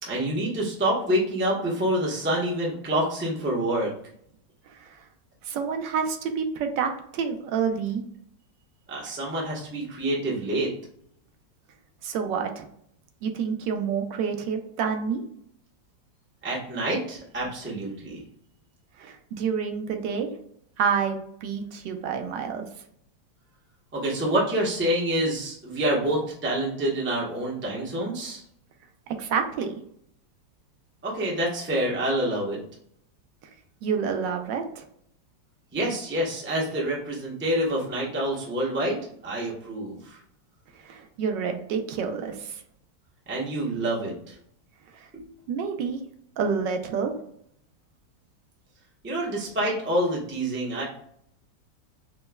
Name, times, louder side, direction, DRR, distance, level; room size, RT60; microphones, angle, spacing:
voice 1, 0.0-3.9 8.9-10.7 16.4-18.2 23.9-28.4 31.0-32.6 35.7-40.2 43.3-44.4 49.0-50.8, right 1 dB, 20° right, -4 dB, 0.3 m, -27 dB
voice 2, 4.7-5.1 5.4-8.0 12.0-12.7 13.2-15.2 19.0-20.3 20.8-22.6 29.1-29.7 33.8-34.8 40.7-42.6 44.9-45.1 45.5-46.0 46.4-47.1, right 6 dB, 75° right, 5 dB, 1.2 m, -28 dB
5.1 x 2.1 x 2.2 m, 0.68 s
omnidirectional pair, 2.0 m